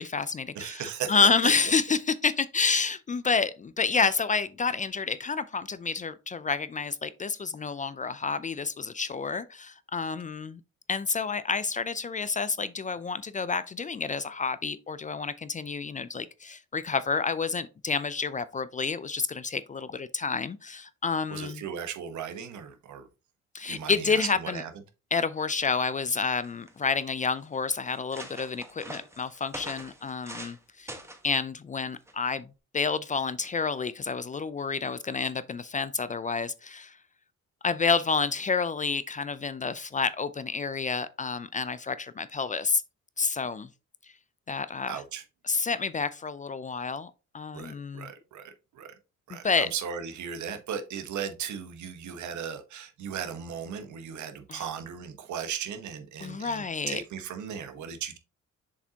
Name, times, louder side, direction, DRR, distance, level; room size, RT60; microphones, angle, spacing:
voice 1, 0.0-10.6 10.9-21.6 23.5-24.6 25.1-31.0 31.2-32.5 32.7-37.0 37.6-42.8 43.2-43.7 44.5-45.0 45.4-48.1 49.3-49.7 54.5-54.6 56.2-57.0, left 5 dB, 25° left, 0.4 m, -29 dB
voice 2, 0.5-1.2 21.3-23.1 23.7-24.7 44.9-45.2 47.5-48.9 49.3-58.2, right 8 dB, 70° right, 1.1 m, -37 dB
sound 1, 26.3-26.9 27.5-27.6 27.9-30.6 30.9-31.3 32.1-32.3, right 1 dB, 10° right, 1.2 m, -43 dB
6.9 x 4.9 x 2.8 m
cardioid pair, 90°, 30 cm